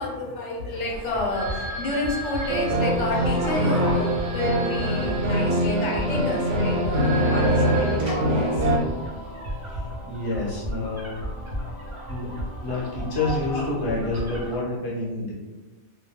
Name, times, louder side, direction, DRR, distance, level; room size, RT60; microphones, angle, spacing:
voice 1, 0.0-8.7, left 2 dB, 75° left, -2 dB, 0.9 m, -30 dB
sound 1, 0.9-14.6, equal, 40° right, 0.4 m, -34 dB
sound 2, 2.5-8.8, right 1 dB, 85° right, 0.9 m, -23 dB
voice 2, 10.0-11.2 12.1-12.3 12.6-15.3, left 2 dB, 25° left, -7 dB, 0.5 m, -28 dB
2.2 x 2.2 x 2.8 m, 1.2 s
omnidirectional pair, 1.2 m